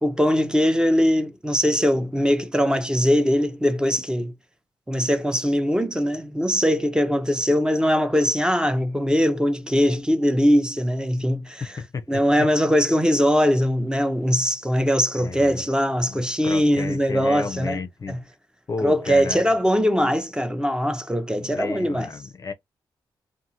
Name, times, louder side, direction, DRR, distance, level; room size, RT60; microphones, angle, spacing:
voice 1, 0.0-4.3 4.9-11.6 12.1-17.8 18.1-18.2 18.8-22.1, equal, 10° right, 0.6 m, -21 dB
voice 2, 11.8-12.5 15.2-15.6 16.0-18.2 18.7-19.4 21.4-22.5, left 4 dB, 40° left, 0.5 m, -32 dB
2.6 x 2.4 x 2.7 m
cardioid pair, 65°, 9 cm